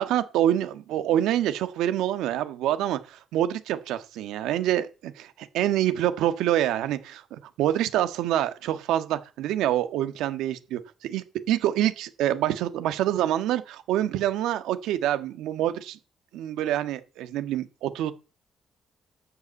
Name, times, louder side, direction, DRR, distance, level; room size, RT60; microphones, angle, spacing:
voice 1, 0.0-16.0 16.3-18.1, right 12 dB, 90° right, 1.5 m, -26 dB
12.5 x 7.1 x 8.7 m
cardioid pair, 90°, 0 cm